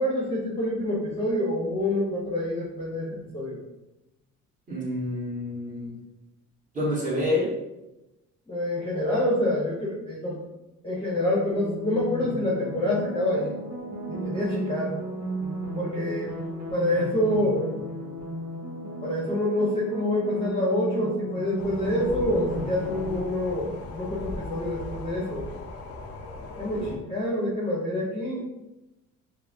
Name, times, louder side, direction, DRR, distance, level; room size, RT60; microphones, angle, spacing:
voice 1, 0.0-3.6 8.5-10.4 10.8-13.5 14.1-14.9 15.7-16.3 16.7-17.7 19.0-25.5 26.6-28.4, left 1 dB, 15° left, -6 dB, 0.9 m, -27 dB
voice 2, 4.7-5.9 6.7-7.5 26.7-26.9, left 1 dB, 25° right, -7 dB, 1.5 m, -28 dB
sound 1, 11.1-23.2, right 1 dB, 60° right, 1.0 m, -34 dB
sound 2, 21.6-27.0, left 2 dB, 50° left, 0.6 m, -39 dB
5.5 x 2.1 x 2.6 m, 0.96 s
cardioid pair, 140°, 31 cm